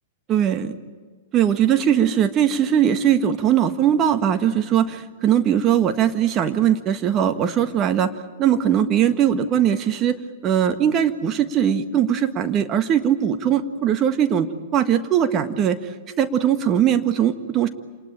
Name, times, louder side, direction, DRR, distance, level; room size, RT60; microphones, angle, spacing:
voice 1, 0.3-0.7 1.3-8.1 8.4-10.2 10.4-14.5 14.7-17.7, right 9 dB, 30° right, 9 dB, 1.6 m, -20 dB
28.0 x 20.0 x 8.8 m, 1.5 s
hypercardioid pair, 105°, 0 cm